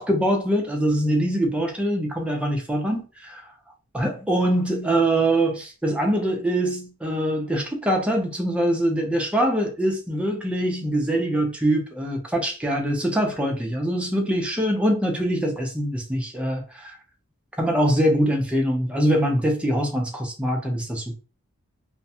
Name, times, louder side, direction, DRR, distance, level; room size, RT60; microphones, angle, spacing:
voice 1, 0.0-3.4 3.9-17.0 17.6-21.1, right 1 dB, 5° right, 0.5 m, -23 dB
2.5 x 2.2 x 2.7 m
head